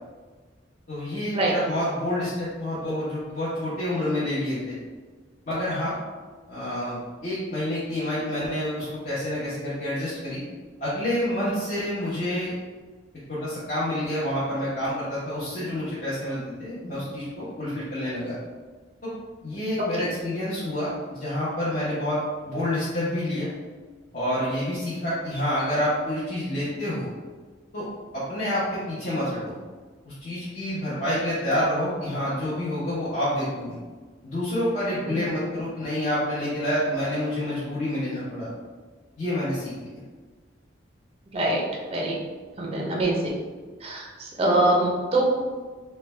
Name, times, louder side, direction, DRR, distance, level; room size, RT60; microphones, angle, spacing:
voice 1, 0.9-4.8 5.5-5.9 6.5-10.4 10.8-12.5 13.3-18.4 19.0-19.1 19.4-23.5 24.1-27.1 27.7-27.9 28.1-29.5 30.0-33.8 34.2-38.5 39.2-39.7, left 1 dB, 45° left, -11 dB, 0.8 m, -28 dB
voice 2, 41.3-41.6 41.9-42.2 42.6-43.4 43.8-45.2, right 1 dB, 30° right, -1 dB, 0.4 m, -24 dB
3.2 x 2.2 x 3.2 m, 1.4 s
head